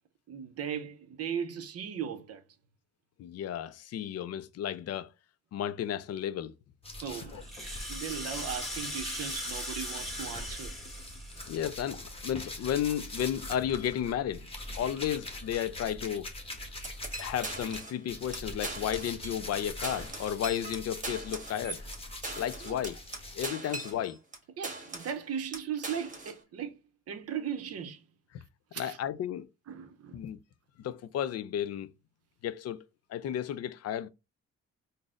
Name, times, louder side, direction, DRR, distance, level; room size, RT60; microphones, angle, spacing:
voice 1, 0.3-2.4 7.0-10.7 22.6-22.8 24.6-26.8 27.1-28.0 28.7-29.0 29.7-30.2, right 8 dB, 55° right, 0.7 m, -37 dB
voice 2, 3.2-5.1 5.5-6.5 7.3-7.4 11.5-14.5 14.7-16.3 16.8-21.8 22.4-23.0 23.3-24.2 28.8-29.5 30.1-30.4 30.8-31.9 32.4-34.1, left 10 dB, 55° left, 0.4 m, -33 dB
sound 1, 6.8-17.8 18.1-23.5, left 1 dB, 20° left, 1.0 m, -43 dB
Rattle (instrument), 7.3-12.1, equal, ahead, 1.6 m, -40 dB
sound 2, 16.8-18.0 18.3-18.4 18.6-19.6 19.8-24.4 24.6-25.2 25.5-26.4, right 2 dB, 25° right, 1.3 m, -40 dB
3.9 x 2.0 x 3.6 m
cardioid pair, 90°, 30 cm